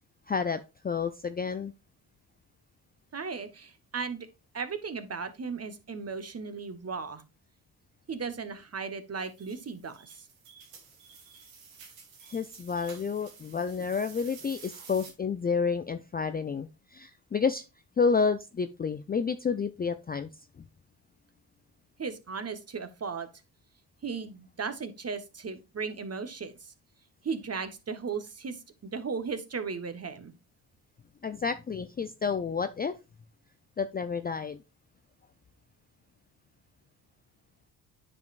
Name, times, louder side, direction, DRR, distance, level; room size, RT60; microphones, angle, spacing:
voice 1, 0.3-1.7 12.3-17.6 18.0-20.3 20.6-20.7 31.2-32.9 33.8-34.6, left 5 dB, 20° left, 10 dB, 0.4 m, -30 dB
voice 2, 3.1-4.3 4.5-7.2 8.1-10.1 22.0-23.3 24.0-26.7 27.2-30.3, right 5 dB, 30° right, 10 dB, 1.3 m, -36 dB
sound 1, 9.2-15.1, right 5 dB, 80° right, 1.8 m, -51 dB
9.5 x 5.1 x 2.5 m, 0.26 s
hypercardioid pair, 50°, 49 cm